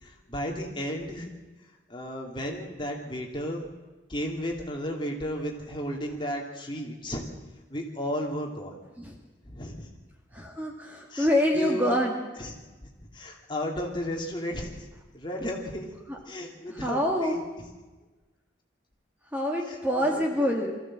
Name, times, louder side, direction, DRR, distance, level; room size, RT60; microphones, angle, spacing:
voice 1, 0.0-1.3 1.9-3.7 4.1-7.3 7.7-8.8 9.4-9.9 11.1-11.3 11.5-12.0 12.4-12.5 13.0-14.9 15.1-15.9 16.3-17.4 19.7-19.8 20.0-20.5, equal, 25° left, 1 dB, 2.6 m, -33 dB
voice 2, 10.3-12.3 16.1-16.2 16.7-17.4 19.3-20.8, equal, 10° right, 0 dB, 1.8 m, -26 dB
23.0 x 15.0 x 7.5 m, 1.2 s
head